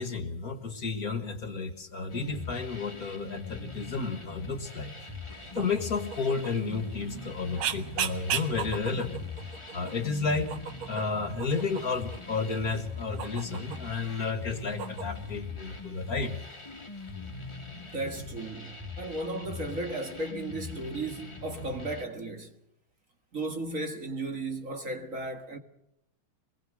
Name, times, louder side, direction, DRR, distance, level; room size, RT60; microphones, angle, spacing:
voice 1, 0.0-4.9 5.6-9.3 9.7-10.5 10.9-16.4, left 4 dB, 45° left, 2.1 m, -32 dB
sound 1, 2.1-22.0, left 3 dB, 15° left, 2.0 m, -42 dB
sound 2, 5.3-15.4, right 8 dB, 85° right, 2.1 m, -39 dB
voice 2, 17.9-22.6 23.3-25.6, right 2 dB, 40° right, 2.1 m, -35 dB
23.5 x 20.5 x 6.4 m
omnidirectional pair, 2.2 m